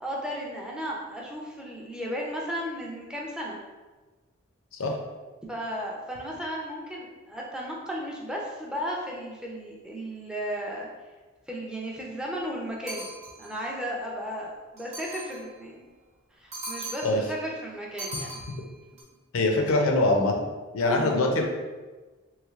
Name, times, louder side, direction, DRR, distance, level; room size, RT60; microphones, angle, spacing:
voice 1, 0.0-3.6 5.5-10.9 11.5-13.1 13.4-15.8 16.4-18.3 19.5-19.7 20.8-21.1, equal, 5° right, -3 dB, 0.4 m, -35 dB
sound 1, 12.9-13.6 14.8-15.5 16.5-17.3 18.0-19.0, right 1 dB, 35° right, 0.8 m, -39 dB
voice 2, 19.3-20.3 20.7-21.4, left 2 dB, 85° left, 3 dB, 0.5 m, -23 dB
3.1 x 3.1 x 2.3 m, 1.3 s
head